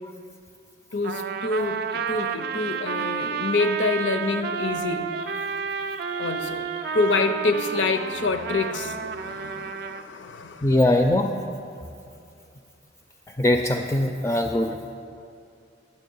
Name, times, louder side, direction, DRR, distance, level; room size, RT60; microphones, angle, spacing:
voice 1, 0.9-10.8, left 3 dB, 75° left, 9 dB, 0.6 m, -27 dB
Trumpet, 1.0-10.0, right 6 dB, 55° right, 0.4 m, -31 dB
voice 2, 10.6-11.3 13.4-14.7, left 1 dB, 15° left, 3 dB, 0.3 m, -21 dB
9.3 x 7.1 x 5.4 m, 2.5 s
head